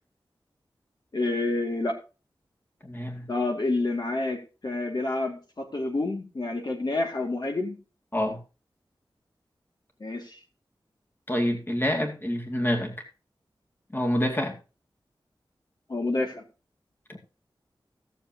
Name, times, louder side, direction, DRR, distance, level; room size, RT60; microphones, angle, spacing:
voice 1, 1.1-2.0 3.3-7.8 10.0-10.4 15.9-16.4, left 2 dB, 50° left, 2 dB, 2.3 m, -28 dB
voice 2, 2.8-3.3 8.1-8.4 11.3-12.9 13.9-14.6, equal, 25° left, 2 dB, 2.3 m, -27 dB
17.0 x 7.3 x 2.9 m, 0.32 s
wide cardioid pair, 90°, 9 cm